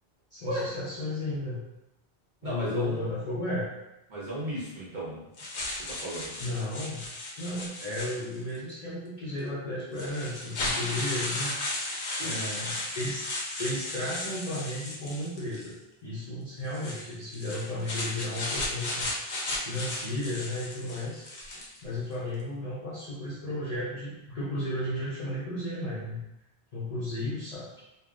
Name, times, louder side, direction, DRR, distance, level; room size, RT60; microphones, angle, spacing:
voice 1, 0.3-1.6 2.4-3.7 6.4-7.1 7.4-11.5 12.2-13.3 13.6-15.8 16.0-19.1 19.6-21.3 21.8-26.2 26.7-27.7, left 1 dB, 45° left, -8 dB, 0.5 m, -34 dB
voice 2, 2.4-3.1 4.1-5.3 5.7-6.3 12.1-12.5 21.5-21.6, right 1 dB, 45° right, -8 dB, 1.1 m, -35 dB
sound 1, 5.4-8.6 9.4-9.5 9.9-15.7 16.7-21.8, left 2 dB, 80° left, 0.9 m, -35 dB
3.2 x 2.0 x 2.4 m, 0.89 s
omnidirectional pair, 1.1 m